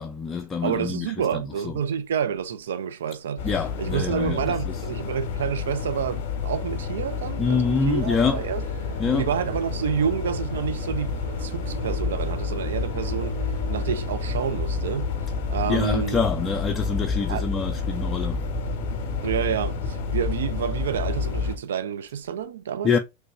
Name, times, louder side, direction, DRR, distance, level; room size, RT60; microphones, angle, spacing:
voice 1, 0.0-1.7 3.4-4.4 7.4-8.4 9.0-9.3 15.7-18.5 22.8-23.0, left 5 dB, 20° left, 0.4 m, -26 dB
voice 2, 0.6-3.5 3.8-8.6 9.1-13.4 13.7-15.1 15.5-16.2 17.3-17.4 19.2-22.9, right 8 dB, 60° right, 0.4 m, -28 dB
sound 1, 3.4-21.6, left 6 dB, 45° left, 0.8 m, -31 dB
Musical instrument, 8.0-19.6, right 10 dB, 80° right, 2.1 m, -40 dB
sound 2, 11.7-21.6, left 3 dB, 25° right, 0.9 m, -31 dB
3.3 x 3.0 x 2.9 m
figure-of-eight pair, 90°, 0 cm